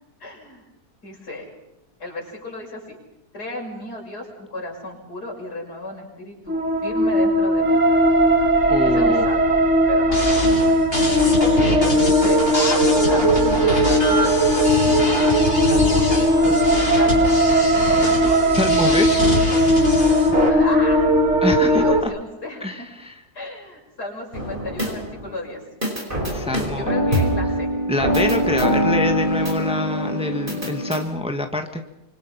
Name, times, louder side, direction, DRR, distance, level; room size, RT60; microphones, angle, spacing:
voice 1, 0.2-0.6 1.0-1.5 2.0-3.0 3.3-7.8 8.8-9.6 9.9-10.8 12.0-15.1 15.7-16.4 16.9-17.4 17.7-18.4 18.8-19.3 20.5-21.1 21.6-22.9 23.3-25.6 26.7-27.7, left 1 dB, 85° left, 0 dB, 7.0 m, -33 dB
sound 1, 6.5-22.0, equal, 50° right, 2.4 m, -18 dB
voice 2, 8.7-9.3 16.4-16.5 18.5-19.1 21.4-22.1 22.6-23.2 26.3-27.0 27.9-31.8, left 1 dB, 5° right, 5 dB, 1.7 m, -25 dB
sound 2, 10.1-20.5, equal, 35° left, 7.0 m, -25 dB
sound 3, 24.3-25.3 25.8-31.0, equal, 30° right, 5.5 m, -23 dB
26.5 x 24.0 x 5.9 m, 0.93 s
omnidirectional pair, 1.7 m